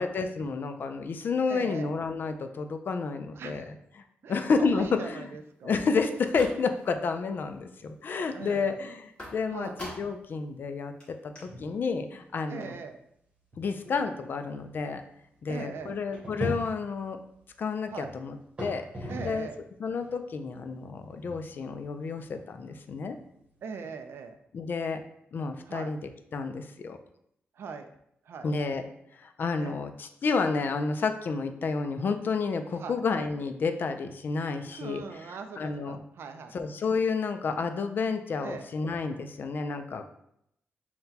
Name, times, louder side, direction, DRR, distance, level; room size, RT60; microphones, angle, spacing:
voice 1, 0.0-3.8 4.3-5.3 5.6-10.9 11.4-12.7 13.6-15.0 15.4-17.2 17.6-19.5 19.8-23.2 24.5-25.0 25.3-26.0 26.3-27.0 28.4-28.8 29.2-36.0 36.5-40.1, left 4 dB, 50° left, 7 dB, 0.4 m, -30 dB
voice 2, 1.5-1.9 3.4-3.7 4.2-5.8 8.3-8.8 9.5-9.8 12.5-13.0 15.5-15.9 17.9-18.1 19.1-19.6 23.6-24.4 25.7-25.9 27.6-27.9 28.3-28.5 29.6-29.8 32.8-33.0 34.7-36.5 38.4-38.7, right 5 dB, 70° right, 7 dB, 0.4 m, -41 dB
sound 1, 5.9-7.0 7.4-7.9 9.2-10.3 10.6-10.7 11.0-11.1 11.4-11.5, left 1 dB, 25° left, 1.5 m, -44 dB
sound 2, 11.4-11.9 12.2-12.3 12.9-13.0 13.5-19.6 20.0-24.3, equal, 30° right, 1.0 m, -42 dB
5.6 x 2.2 x 2.8 m, 0.75 s
wide cardioid pair, 125°, 4 cm